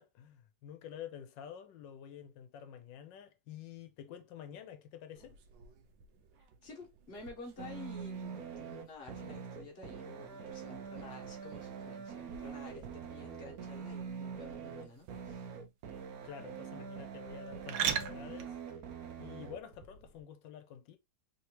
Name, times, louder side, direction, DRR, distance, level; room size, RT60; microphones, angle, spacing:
voice 1, 0.0-5.4 16.2-18.6 19.2-21.0, left 9 dB, 90° left, 1.4 m, -49 dB
sound 1, 5.1-20.2, right 9 dB, 90° right, 1.3 m, -45 dB
voice 2, 6.4-15.5, left 3 dB, 35° left, 1.4 m, -51 dB
sound 2, 7.6-19.6, right 7 dB, 70° right, 0.9 m, -44 dB
3.5 x 2.9 x 2.9 m
omnidirectional pair, 1.9 m